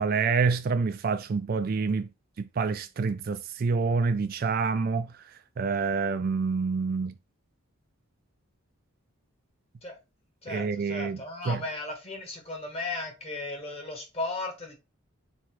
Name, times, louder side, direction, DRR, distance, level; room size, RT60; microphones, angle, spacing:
voice 1, 0.0-2.1 2.4-5.2 5.6-7.1 10.5-11.6, right 4 dB, 45° right, 0.3 m, -27 dB
voice 2, 10.4-14.8, left 2 dB, 30° left, 1.3 m, -36 dB
3.5 x 3.2 x 4.4 m
head